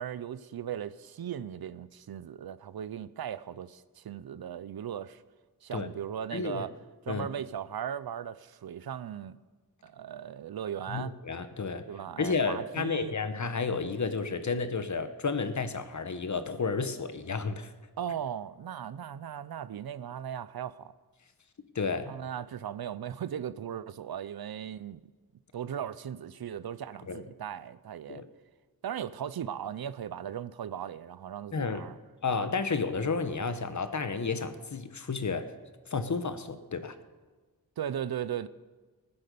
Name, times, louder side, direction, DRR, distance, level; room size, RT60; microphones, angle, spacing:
voice 1, 0.0-5.2 5.6-6.7 7.1-9.4 9.8-11.1 11.9-13.1 18.0-20.9 22.1-25.0 25.5-28.2 28.8-32.0 37.8-38.5, right 9 dB, 80° right, 0.6 m, -37 dB
voice 2, 6.3-6.7 7.1-7.3 10.9-11.9 12.2-17.7 21.7-22.2 27.1-27.2 28.1-28.3 31.5-31.8 32.2-35.5 35.9-36.9, left 4 dB, 50° left, 1.1 m, -31 dB
17.5 x 9.7 x 6.8 m
wide cardioid pair, 95°, 36 cm